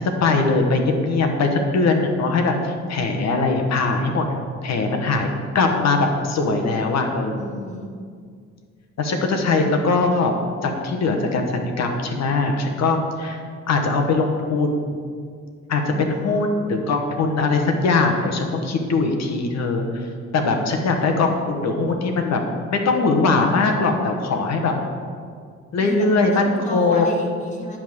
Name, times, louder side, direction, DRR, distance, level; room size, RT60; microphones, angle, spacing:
voice 1, 0.0-4.3 4.6-5.3 5.5-7.5 9.0-10.3 10.6-15.0 15.7-20.1 20.3-22.4 22.7-24.7 25.7-26.4 26.7-27.1, left 3 dB, 60° left, 3 dB, 1.1 m, -21 dB
voice 2, 7.4-7.9 15.9-16.5 25.8-27.8, equal, 25° left, 0 dB, 1.7 m, -33 dB
10.0 x 3.6 x 6.4 m, 2.1 s
cardioid pair, 90°, 30 cm